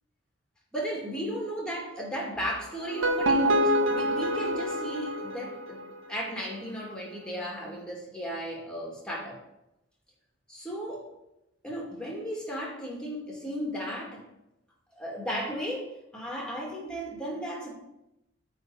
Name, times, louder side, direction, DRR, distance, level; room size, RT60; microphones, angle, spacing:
voice 1, 0.7-9.4 10.5-11.1 11.6-14.2 15.0-17.7, equal, 5° left, -3 dB, 2.3 m, -35 dB
sound 1, 2.8-6.0, equal, 90° right, 1.4 m, -26 dB
9.0 x 4.0 x 7.0 m, 0.88 s
head